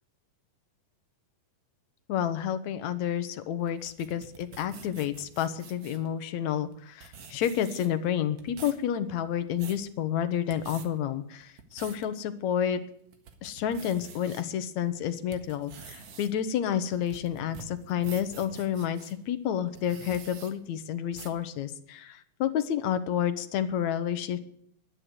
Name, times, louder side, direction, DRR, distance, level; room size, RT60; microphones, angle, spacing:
voice 1, 2.1-12.8 13.4-24.4, left 9 dB, 70° left, 11 dB, 2.2 m, -30 dB
sound 1, 3.7-6.1 6.7-6.8 7.0-8.1 8.4-8.8 9.3-9.8 10.4-10.9 11.4-12.1 12.6-12.7 13.1-14.4 14.9-19.1 19.7-20.5 21.1-21.4, right 6 dB, 55° right, 2.5 m, -47 dB
12.0 x 9.6 x 9.5 m, 0.68 s
omnidirectional pair, 3.7 m